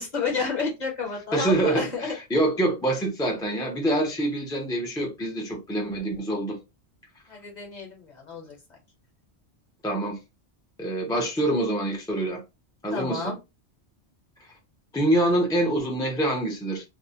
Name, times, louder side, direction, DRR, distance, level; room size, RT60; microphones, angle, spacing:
voice 1, 0.0-2.2 7.3-8.5 12.9-13.4, left 4 dB, 45° left, 0.8 m, -30 dB
voice 2, 1.3-6.6 9.8-10.2 10.8-12.4 12.8-13.3 14.9-16.8, right 1 dB, 5° left, 0.4 m, -25 dB
2.6 x 2.0 x 2.7 m
omnidirectional pair, 1.2 m